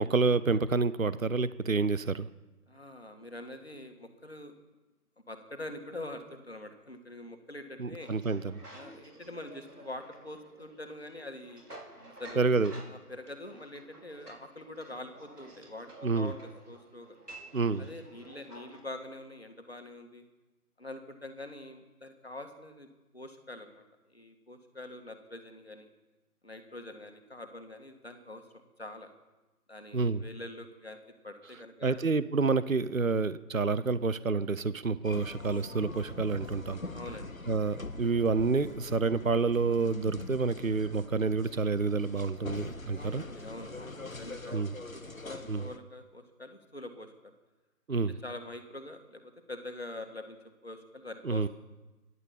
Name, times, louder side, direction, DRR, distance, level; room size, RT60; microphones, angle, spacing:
voice 1, 0.0-2.3 7.8-8.4 12.4-12.7 16.0-16.3 17.5-17.9 29.9-30.2 31.8-36.8 37.5-43.2 44.5-44.7 45.5-45.7 47.9-48.2 51.2-51.5, right 4 dB, 60° right, 17 dB, 0.8 m, -28 dB
voice 2, 2.7-4.5 5.3-8.1 8.7-11.6 12.1-12.5 12.9-17.2 17.8-20.2 20.8-25.9 26.4-28.4 28.8-29.1 29.7-31.0 31.2-32.0 36.9-37.4 42.9-44.6 44.9-47.3 47.9-50.4 50.6-51.4, left 1 dB, 40° left, 7 dB, 1.8 m, -45 dB
sound 1, 8.0-18.8, right 1 dB, 80° right, 4.7 m, -52 dB
sound 2, 35.0-45.8, left 2 dB, 60° left, 1.3 m, -43 dB
15.0 x 11.0 x 7.4 m, 1.1 s
figure-of-eight pair, 175°, 46 cm